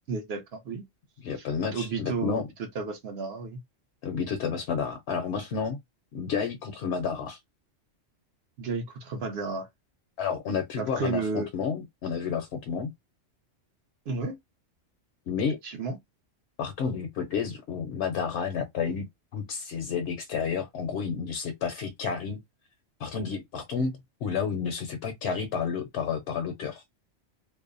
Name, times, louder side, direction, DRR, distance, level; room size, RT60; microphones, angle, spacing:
voice 1, 0.1-0.8 1.4-1.5 1.7-3.6 8.6-9.7 10.8-11.5 14.1-14.4 15.6-16.0, right 4 dB, 60° right, 0.9 m, -32 dB
voice 2, 1.2-2.5 4.0-5.8 6.1-7.4 10.2-12.9 15.3-15.6 16.6-22.4 23.0-26.8, left 6 dB, 70° left, 0.8 m, -31 dB
2.5 x 2.1 x 2.4 m
omnidirectional pair, 1.2 m